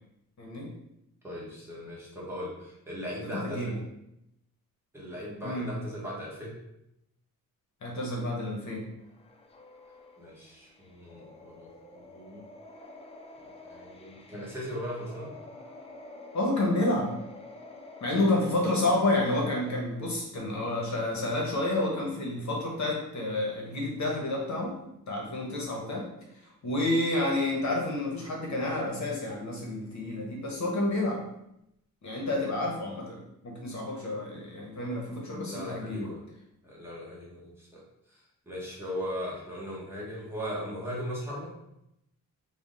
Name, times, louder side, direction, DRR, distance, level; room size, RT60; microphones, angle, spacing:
voice 1, 0.4-0.7 3.3-3.8 5.4-5.7 7.8-8.8 16.3-17.1 18.0-24.8 25.1-26.1 26.6-31.2 32.0-36.1, left 2 dB, 50° left, -1 dB, 0.9 m, -29 dB
voice 2, 1.2-3.8 4.9-6.5 10.2-12.4 13.6-15.3 35.5-36.2 36.6-37.8 38.1-41.5, equal, 5° right, -6 dB, 1.1 m, -38 dB
sound 1, 9.0-19.8, left 2 dB, 15° left, 0.4 m, -48 dB
3.4 x 2.1 x 3.8 m, 0.83 s
cardioid pair, 100°, 36 cm